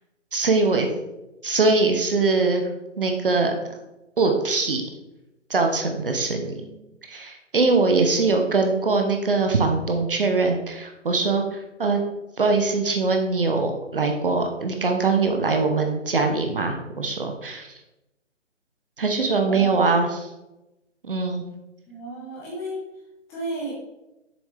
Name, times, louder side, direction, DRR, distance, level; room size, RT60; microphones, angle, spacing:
voice 1, 0.3-0.9 1.4-2.7 3.0-3.5 4.2-4.8 5.5-6.5 7.1-12.0 12.4-17.7 19.0-20.3 21.0-21.4, right 3 dB, 45° right, 3 dB, 0.9 m, -22 dB
voice 2, 6.6-6.9 8.0-8.4 19.4-19.9 21.9-22.8 23.3-23.7, right 1 dB, 5° left, -7 dB, 1.0 m, -34 dB
7.1 x 6.2 x 3.3 m, 0.96 s
figure-of-eight pair, 145°, 38 cm